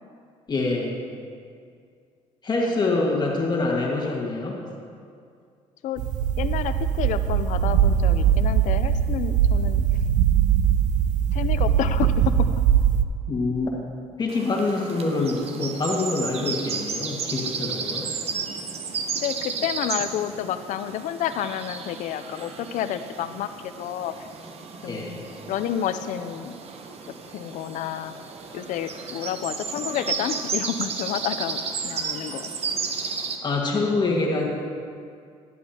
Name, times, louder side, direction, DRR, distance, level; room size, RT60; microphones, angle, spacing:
voice 1, 0.5-0.9 2.4-4.6 13.3-13.7 14.2-18.1 24.9-25.1 33.4-34.5, left 3 dB, 35° left, -2 dB, 1.7 m, -25 dB
voice 2, 2.6-3.0 5.8-6.0 6.4-9.8 11.3-12.6 19.2-24.1 24.8-25.2 25.5-26.5 27.3-28.1 28.5-32.5, left 10 dB, 70° left, 11 dB, 0.5 m, -30 dB
sound 1, 6.0-13.0, right 9 dB, 70° right, 0.4 m, -21 dB
sound 2, 14.3-33.4, right 5 dB, 50° right, 0.9 m, -33 dB
11.5 x 11.0 x 2.9 m, 2.3 s
cardioid pair, 105°, 13 cm